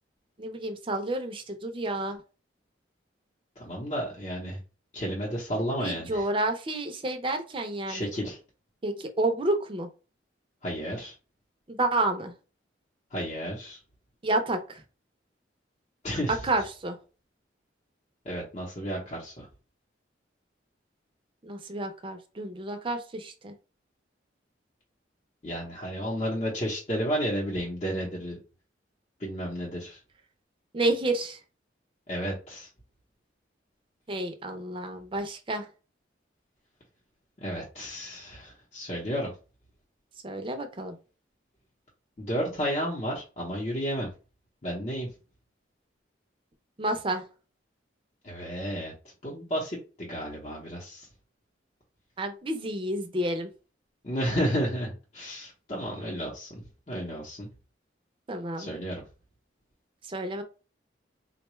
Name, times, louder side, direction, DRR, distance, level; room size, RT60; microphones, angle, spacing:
voice 1, 0.4-2.2 5.8-8.1 8.8-9.9 11.7-12.3 14.2-14.8 16.4-17.0 21.4-23.5 30.7-31.4 34.1-35.7 40.2-41.0 46.8-47.2 52.2-53.5 58.3-58.7 60.1-60.4, right 2 dB, 30° right, 6 dB, 0.5 m, -30 dB
voice 2, 3.6-4.6 4.9-6.3 7.9-8.4 10.6-11.1 13.1-13.8 16.0-16.4 18.2-19.5 25.4-28.4 29.2-30.0 32.1-32.7 37.4-39.3 42.2-44.1 44.6-45.1 48.2-48.9 49.2-51.1 54.0-57.5 58.6-59.0, equal, 35° left, -4 dB, 0.8 m, -32 dB
3.7 x 2.2 x 3.1 m, 0.34 s
head